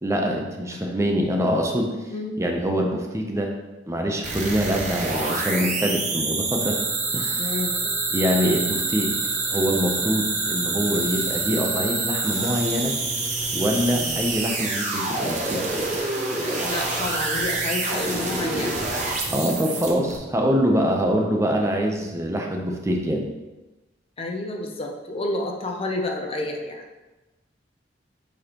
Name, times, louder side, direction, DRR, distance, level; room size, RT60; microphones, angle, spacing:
voice 1, 0.0-2.0 2.4-3.5 3.9-6.8 7.1-7.6 8.1-9.1 9.5-12.9 13.5-15.6 19.3-23.3, equal, 15° right, 1 dB, 0.6 m, -24 dB
voice 2, 2.1-2.4 7.4-7.8 13.9-14.1 16.6-18.8 20.9-21.2 24.2-26.8, left 2 dB, 30° left, 2 dB, 0.6 m, -30 dB
sound 1, 4.2-20.2, right 3 dB, 40° right, 1.0 m, -27 dB
sound 2, 6.6-12.5, left 2 dB, 65° left, 1.2 m, -39 dB
7.9 x 4.2 x 2.9 m, 1.1 s
head